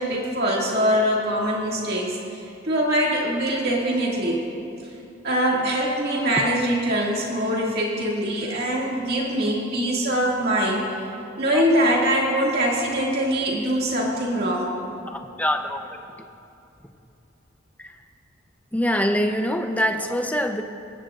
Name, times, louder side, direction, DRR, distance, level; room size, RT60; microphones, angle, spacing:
voice 1, 0.0-4.4 5.2-10.8 11.4-14.7, equal, 55° right, -4 dB, 2.3 m, -23 dB
voice 2, 15.1-16.1 17.8-18.0 18.7-20.6, equal, 10° left, 5 dB, 0.8 m, -24 dB
27.0 x 15.5 x 2.6 m, 2.7 s
head